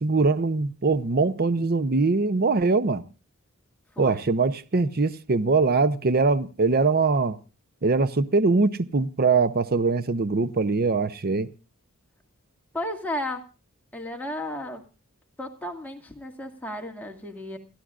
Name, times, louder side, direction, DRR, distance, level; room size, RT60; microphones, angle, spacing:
voice 1, 0.0-3.0 4.0-7.4 7.8-11.5, right 3 dB, 45° right, 0.7 m, -22 dB
voice 2, 12.7-13.4 13.9-14.8 15.4-17.6, left 1 dB, 10° left, 2.2 m, -33 dB
29.5 x 11.5 x 2.5 m
head